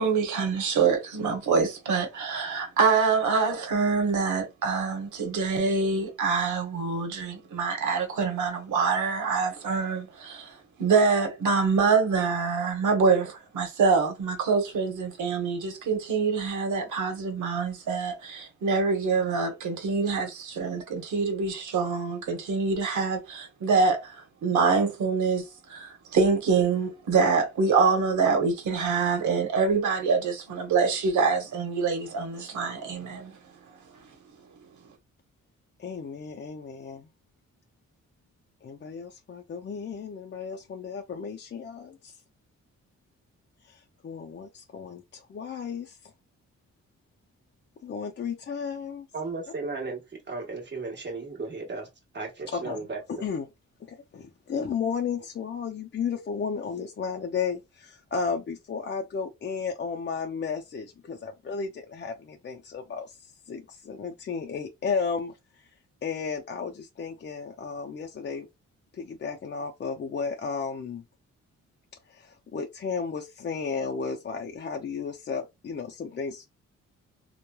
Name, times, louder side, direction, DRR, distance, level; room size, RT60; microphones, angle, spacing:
voice 1, 0.0-33.4, right 5 dB, 90° right, 0.9 m, -25 dB
voice 2, 35.8-37.1 38.6-42.1 43.6-46.1 47.8-49.1 52.5-52.8 53.2-53.5 53.9-65.7 66.0-68.5 68.9-71.0 72.1-76.4, left 5 dB, 40° left, 0.4 m, -33 dB
voice 3, 49.1-53.2, right 3 dB, 40° right, 1.2 m, -35 dB
3.0 x 2.1 x 2.2 m
cardioid pair, 95°, 29 cm